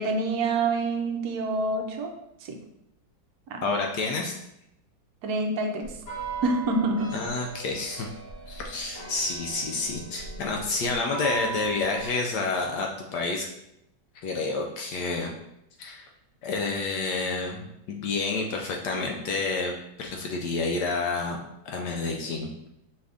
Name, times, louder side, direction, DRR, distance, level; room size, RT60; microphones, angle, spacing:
voice 1, 0.0-2.1 2.5-2.6 3.5-3.7 5.2-5.9 6.4-7.1, right 2 dB, 70° right, 2 dB, 1.0 m, -26 dB
voice 2, 3.6-4.4 7.1-8.1 8.5-13.5 14.1-15.3 15.8-16.1 16.4-21.4 21.6-22.5, left 3 dB, 70° left, 1 dB, 1.1 m, -29 dB
sound 1, 5.8-12.1, right 5 dB, 35° left, 1.2 m, -38 dB
5.0 x 2.5 x 3.4 m, 0.80 s
omnidirectional pair, 2.0 m